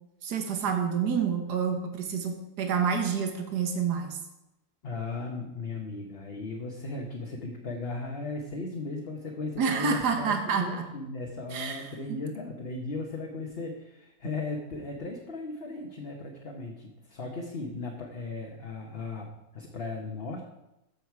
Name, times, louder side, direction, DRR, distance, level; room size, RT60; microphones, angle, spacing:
voice 1, 0.2-4.2 9.6-10.9 11.5-12.2, right 6 dB, 80° right, 4 dB, 1.7 m, -28 dB
voice 2, 4.8-19.3 19.5-20.4, left 3 dB, 40° left, 0 dB, 1.3 m, -37 dB
14.0 x 6.6 x 4.7 m, 0.93 s
omnidirectional pair, 1.7 m